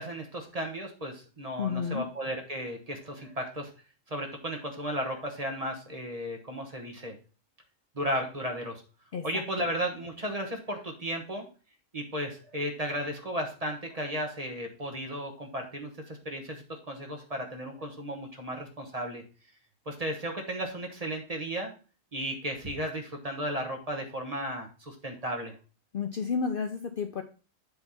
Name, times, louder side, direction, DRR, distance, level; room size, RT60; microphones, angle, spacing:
voice 1, 0.0-3.7 4.1-7.1 7.9-8.8 9.2-11.5 11.9-19.2 19.9-21.7 22.1-25.5, equal, 30° right, 3 dB, 1.3 m, -34 dB
voice 2, 1.6-2.0 9.1-9.4 25.9-27.2, left 6 dB, 55° left, 6 dB, 0.7 m, -31 dB
8.0 x 3.4 x 5.6 m, 0.36 s
omnidirectional pair, 1.3 m